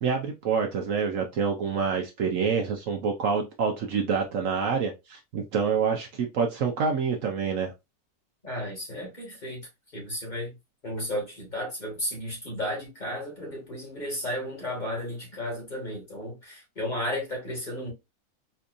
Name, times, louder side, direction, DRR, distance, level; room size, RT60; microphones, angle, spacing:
voice 1, 0.0-7.7, right 6 dB, 65° right, 1.0 m, -27 dB
voice 2, 8.4-9.6 9.9-10.6 10.8-17.9, left 1 dB, 30° left, 1.6 m, -33 dB
4.4 x 2.7 x 2.4 m
omnidirectional pair, 1.6 m